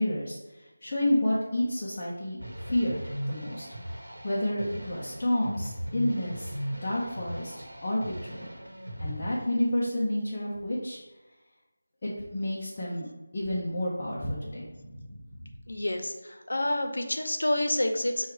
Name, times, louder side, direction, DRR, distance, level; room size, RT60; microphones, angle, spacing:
voice 1, 0.0-3.7 4.2-6.5 6.8-8.5 9.0-11.0 12.0-13.1 13.3-15.5, left 1 dB, 20° left, -7 dB, 0.5 m, -30 dB
sound 1, 2.4-9.3, equal, 90° right, 0.9 m, -38 dB
voice 2, 15.7-18.3, left 1 dB, 85° left, 4 dB, 0.7 m, -28 dB
4.6 x 2.3 x 4.7 m, 1.1 s
figure-of-eight pair, 180°, 0 cm